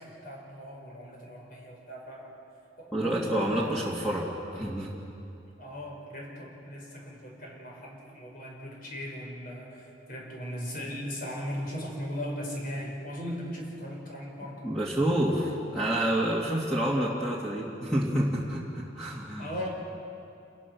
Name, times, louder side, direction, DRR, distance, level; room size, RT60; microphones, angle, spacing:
voice 1, 0.0-2.4 2.8-4.1 5.6-14.7 16.3-16.7 19.4-19.7, equal, 50° left, -1 dB, 5.7 m, -38 dB
voice 2, 2.9-4.2 4.5-4.9 14.6-19.5, right 1 dB, ahead, -6 dB, 2.5 m, -28 dB
29.0 x 20.5 x 6.2 m, 2.7 s
head